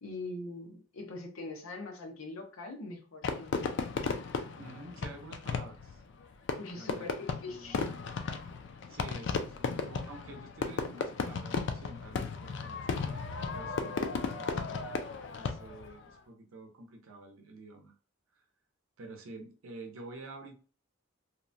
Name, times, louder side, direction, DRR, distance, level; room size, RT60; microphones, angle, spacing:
voice 1, 0.0-3.6 6.6-7.8, left 2 dB, 90° left, 2 dB, 0.7 m, -42 dB
Fireworks, 3.2-15.9, left 4 dB, 60° left, 0.3 m, -35 dB
voice 2, 4.6-6.0 6.7-7.8 8.9-13.2 13.5-14.0 14.4-14.8 15.3-18.0 18.3-18.4 19.0-20.5, right 2 dB, 85° right, 4 dB, 0.6 m, -49 dB
2.9 x 2.1 x 2.5 m, 0.39 s
head